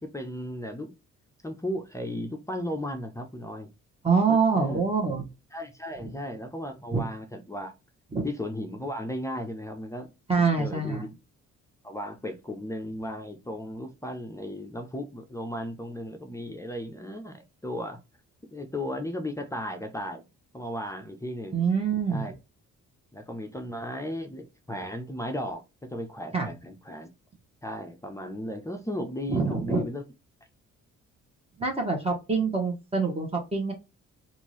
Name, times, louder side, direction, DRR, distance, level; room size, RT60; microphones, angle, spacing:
voice 1, 0.0-0.9 1.4-3.7 4.3-4.8 5.5-7.7 8.2-10.1 10.4-11.2 11.8-18.0 18.5-20.3 20.5-21.6 22.1-22.3 23.1-25.6 25.9-27.1 27.6-30.0, left 1 dB, 10° left, 0.6 m, -35 dB
voice 2, 4.0-5.2 6.9-7.0 8.1-8.2 10.3-11.1 21.5-22.3 26.3-26.5 29.3-29.8 31.6-33.7, right 5 dB, 20° right, 1.2 m, -25 dB
3.6 x 2.6 x 3.0 m
cardioid pair, 90°, 30 cm